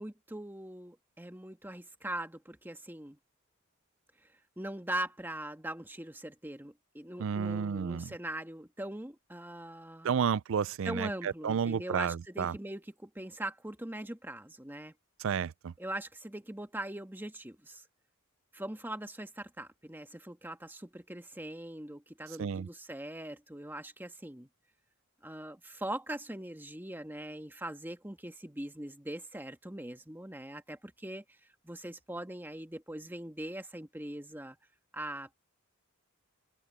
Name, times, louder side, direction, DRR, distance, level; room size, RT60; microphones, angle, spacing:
voice 1, 0.0-3.2 4.6-10.2 10.8-14.9 15.8-17.8 18.5-24.5 25.2-31.4 31.6-34.6 34.9-35.3, right 1 dB, 10° right, 1.5 m, -41 dB
voice 2, 7.2-8.1 10.0-12.5 15.2-15.7 22.4-22.7, right 7 dB, 65° right, 0.4 m, -31 dB
head